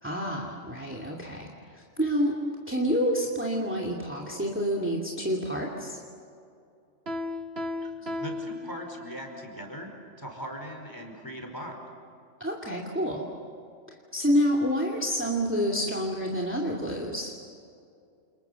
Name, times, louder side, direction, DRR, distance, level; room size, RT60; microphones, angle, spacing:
voice 1, 0.0-2.4 2.7-6.0 12.4-13.2 13.9-17.3, equal, 10° right, -1 dB, 2.6 m, -28 dB
Piano, 7.1-9.4, left 2 dB, 55° right, 1.4 m, -35 dB
voice 2, 8.1-9.9 10.2-11.8, equal, 15° left, 2 dB, 4.9 m, -39 dB
29.5 x 28.5 x 7.0 m, 2.5 s
omnidirectional pair, 1.3 m